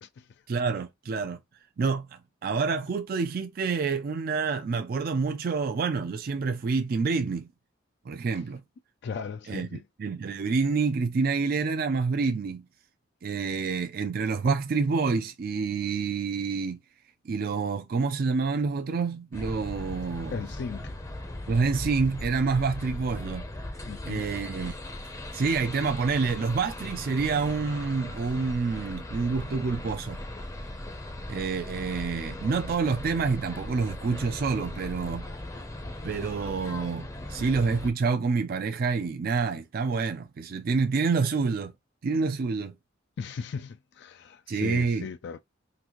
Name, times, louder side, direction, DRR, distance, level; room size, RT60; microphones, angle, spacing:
voice 1, 0.5-1.4 1.8-7.5 8.1-8.6 9.5-9.7 10.0-12.6 13.2-16.8 17.3-20.4 21.5-23.4 24.1-24.7 25.3-30.2 31.3-35.3 36.0-41.7 42.0-42.7 44.5-45.0, right 4 dB, 50° right, 0.4 m, -28 dB
voice 2, 9.0-9.8 20.3-20.9 23.9-24.3 43.2-45.4, left 5 dB, 60° left, 0.3 m, -37 dB
sound 1, 19.3-37.9, left 1 dB, 15° left, 0.6 m, -38 dB
3.9 x 2.5 x 2.9 m
head